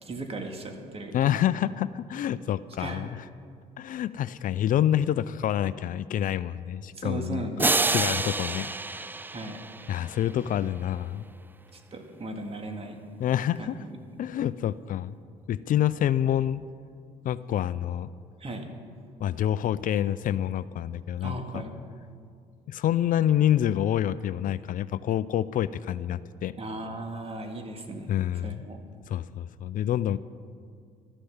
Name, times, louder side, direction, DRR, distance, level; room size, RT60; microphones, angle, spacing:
voice 1, 0.0-1.4 2.8-3.0 7.0-8.0 9.3-9.6 11.7-13.0 13.6-14.3 18.4-18.7 21.2-21.7 26.6-28.1 28.4-28.8, right 2 dB, 35° right, 4 dB, 2.1 m, -37 dB
voice 2, 1.1-3.2 3.8-9.1 9.9-11.2 13.2-13.8 14.2-15.2 15.5-16.6 17.2-18.1 19.2-21.6 22.7-26.5 28.1-28.6 29.1-30.2, left 11 dB, 55° left, 16 dB, 0.4 m, -27 dB
sound 1, 7.6-10.3, right 3 dB, 10° right, 0.4 m, -28 dB
13.0 x 10.0 x 7.2 m, 2.3 s
supercardioid pair, 75°, 16 cm